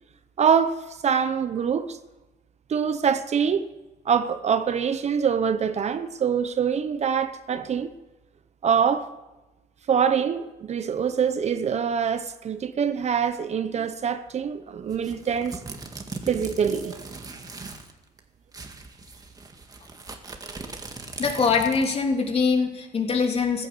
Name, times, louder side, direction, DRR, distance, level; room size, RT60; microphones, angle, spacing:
voice 1, 0.4-2.0 2.7-3.7 4.0-7.9 8.6-9.1 9.9-15.6 16.3-17.2, right 7 dB, 40° right, 0.9 m, -24 dB
sound 1, 14.9-17.9 18.2-18.3 18.5-22.1, right 3 dB, 20° right, 1.9 m, -39 dB
voice 2, 21.2-23.7, left 5 dB, 35° left, 3.2 m, -23 dB
15.0 x 13.5 x 6.9 m
cardioid pair, 110°, 17 cm